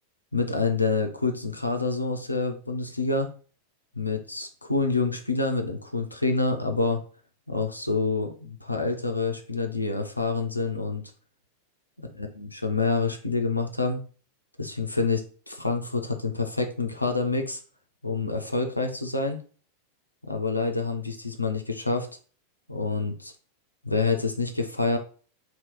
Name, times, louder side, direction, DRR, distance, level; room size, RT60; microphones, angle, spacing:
voice 1, 0.3-3.3 4.0-7.0 7.5-11.0 12.2-14.0 14.6-17.6 18.0-19.4 20.2-22.1 22.7-23.3 23.8-25.0, left 3 dB, 85° left, 4 dB, 0.4 m, -27 dB
2.8 x 2.2 x 3.5 m, 0.40 s
figure-of-eight pair, 90°, 0 cm